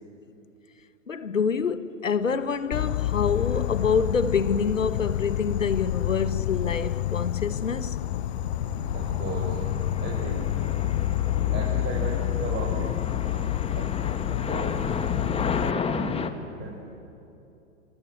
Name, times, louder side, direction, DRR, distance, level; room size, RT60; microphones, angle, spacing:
voice 1, 1.1-8.0, left 5 dB, 90° left, 1.4 m, -26 dB
Insect, 2.7-15.7, left 14 dB, 60° left, 0.7 m, -28 dB
sound 1, 6.6-12.4, right 9 dB, 50° right, 3.9 m, -45 dB
sound 2, 8.5-16.3, left 5 dB, 15° left, 1.7 m, -33 dB
voice 2, 8.9-9.6 10.0-10.5 11.5-12.9 13.7-13.9 14.5-14.8 15.5-16.2 16.5-16.8, right 3 dB, 30° right, 5.9 m, -35 dB
27.5 x 27.0 x 8.0 m
hypercardioid pair, 105°, 37 cm